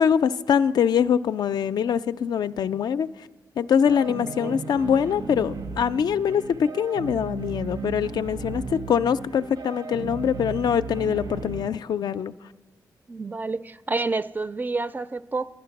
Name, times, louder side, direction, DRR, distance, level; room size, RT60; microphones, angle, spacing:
voice 1, 0.0-3.1 3.6-12.3, left 8 dB, 70° left, 0.3 m, -23 dB
sound 1, 3.9-11.7, right 5 dB, 65° right, 0.7 m, -36 dB
voice 2, 4.4-4.7 13.1-15.5, right 3 dB, 25° right, 0.4 m, -29 dB
11.0 x 10.5 x 5.8 m
cardioid pair, 95°, 7 cm